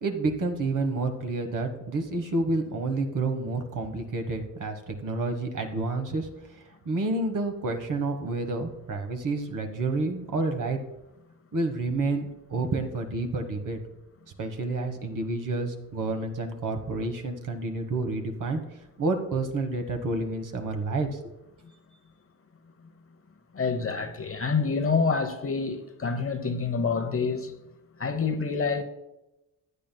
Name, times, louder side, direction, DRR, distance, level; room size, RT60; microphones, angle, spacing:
voice 1, 0.0-6.3 6.8-10.8 11.5-13.8 14.4-18.6 19.0-21.3, right 3 dB, 45° right, 1.4 m, -29 dB
voice 2, 23.5-27.5 28.0-28.8, left 5 dB, 30° left, 0.9 m, -27 dB
15.0 x 9.1 x 2.3 m
cardioid pair, 85°, 43 cm